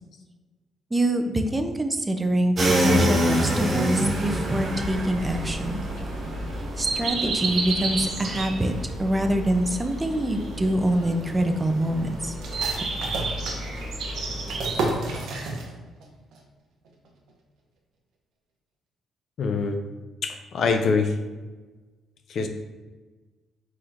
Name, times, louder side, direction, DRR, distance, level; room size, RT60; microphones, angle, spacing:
voice 1, 0.9-5.7 6.8-8.7 9.0-12.3, right 1 dB, 15° right, 6 dB, 0.5 m, -25 dB
sound 1, 2.6-8.8, equal, 40° right, 1.4 m, -26 dB
sound 2, 4.5-15.2, right 2 dB, 65° right, 1.4 m, -32 dB
sound 3, 12.4-16.1 16.3-16.4 16.9-17.3, right 2 dB, 80° right, 0.8 m, -32 dB
voice 2, 19.4-19.8 20.2-21.2 22.3-22.5, left 4 dB, 65° left, 6 dB, 0.5 m, -24 dB
4.3 x 4.1 x 2.5 m, 1.3 s
cardioid pair, 90°, 0 cm